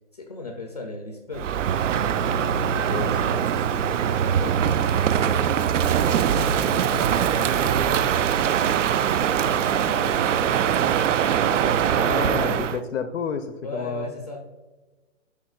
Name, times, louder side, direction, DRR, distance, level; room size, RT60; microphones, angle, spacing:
voice 1, 0.1-1.6 2.9-5.7 6.1-8.8 9.2-12.5 13.6-14.5, left 2 dB, 35° left, 3 dB, 0.4 m, -38 dB
Crow, 1.3-12.8, right 8 dB, 75° right, 0.5 m, -22 dB
voice 2, 2.7-3.1 6.6-6.9 12.0-14.1, left 7 dB, 85° left, 8 dB, 0.6 m, -30 dB
10.5 x 4.2 x 2.3 m, 1.2 s
hypercardioid pair, 170°, 37 cm